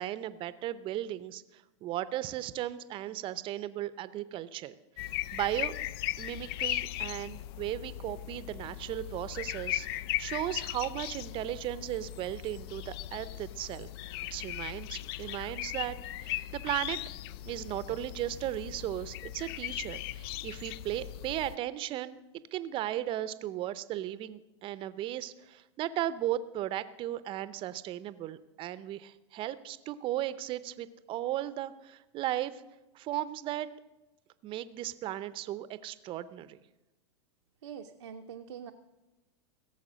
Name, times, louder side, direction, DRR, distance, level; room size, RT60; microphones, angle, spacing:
voice 1, 0.0-4.7 5.0-5.8 6.2-13.9 14.3-16.0 16.2-17.0 17.4-32.6 32.9-33.7 34.4-36.6, right 13 dB, 35° right, 15 dB, 0.6 m, -36 dB
sound 1, 5.0-21.6, left 14 dB, 55° left, 0.4 m, -38 dB
voice 2, 37.6-38.7, right 8 dB, 85° right, 3 dB, 0.7 m, -44 dB
16.5 x 7.1 x 6.3 m, 1.1 s
hypercardioid pair, 115°, 15 cm